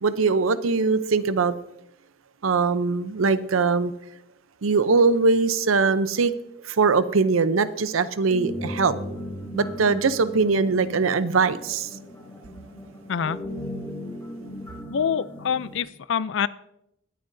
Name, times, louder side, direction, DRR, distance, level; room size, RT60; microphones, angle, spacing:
voice 1, 0.0-1.5 2.4-3.9 4.6-6.3 6.7-8.9 9.5-11.9, right 4 dB, 85° right, 0.6 m, -21 dB
sound 1, 8.3-15.8, left 1 dB, 10° left, 2.8 m, -37 dB
voice 2, 13.1-13.4 14.9-16.5, left 7 dB, 65° left, 0.4 m, -26 dB
20.0 x 9.1 x 2.6 m
head